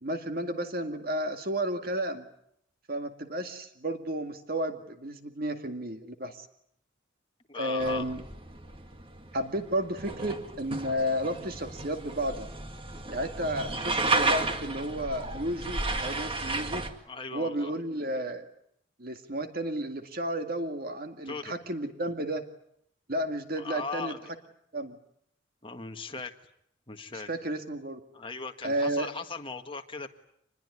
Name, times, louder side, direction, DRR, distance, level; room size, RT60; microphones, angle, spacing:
voice 1, 0.0-2.2 2.9-6.5 7.5-8.2 9.3-12.5 13.1-16.9 17.3-18.4 19.0-22.5 23.1-24.1 24.7-25.0 27.1-28.0 28.6-29.1, right 1 dB, 50° right, 6 dB, 2.1 m, -32 dB
voice 2, 7.5-8.1 17.1-17.7 21.3-21.5 23.6-24.3 25.6-26.3 26.9-27.3 28.1-30.1, left 4 dB, 25° left, 5 dB, 1.8 m, -38 dB
sound 1, 7.8-16.9, right 3 dB, 25° right, 2.0 m, -33 dB
26.0 x 21.0 x 9.7 m, 0.74 s
head